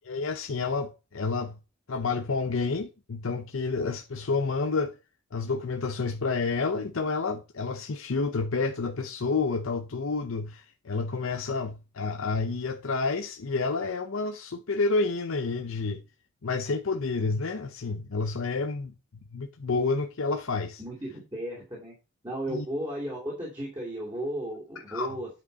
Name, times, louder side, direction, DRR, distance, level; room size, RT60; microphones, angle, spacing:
voice 1, 0.0-1.6 1.9-4.9 5.3-16.0 16.4-18.9 19.3-20.8 22.5-22.7 24.9-25.1, left 4 dB, 70° left, 0.7 m, -29 dB
voice 2, 20.8-21.9 22.2-25.3, right 1 dB, 20° right, 2.9 m, -34 dB
9.2 x 5.2 x 4.1 m
head